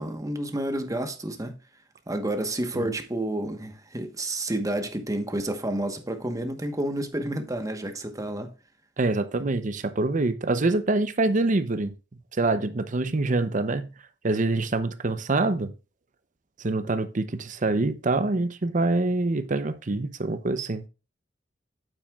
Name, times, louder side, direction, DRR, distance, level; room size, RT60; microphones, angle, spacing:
voice 1, 0.0-1.6 2.1-8.5, right 1 dB, 20° right, 1.2 m, -30 dB
voice 2, 9.0-11.9 12.3-13.9 14.2-15.7 16.6-20.8, right 2 dB, 45° right, 0.7 m, -25 dB
9.1 x 8.3 x 2.4 m
head